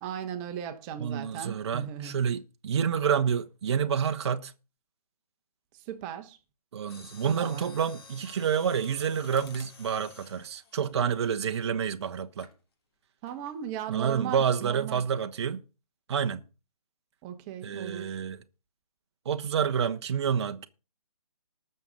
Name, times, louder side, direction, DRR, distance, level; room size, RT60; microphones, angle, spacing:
voice 1, 0.0-2.2 5.9-6.4 7.2-7.7 13.2-15.0 17.2-18.2, right 10 dB, 20° right, 1.4 m, -37 dB
voice 2, 1.0-4.5 6.7-12.5 13.9-15.6 16.1-16.4 17.6-18.4 19.2-20.7, right 7 dB, 45° right, 1.0 m, -28 dB
Mechanisms, 6.8-11.8 12.4-12.6 13.3-13.6 13.9-14.0, left 4 dB, 40° left, 3.2 m, -51 dB
19.5 x 6.9 x 4.0 m
figure-of-eight pair, 145°, 20 cm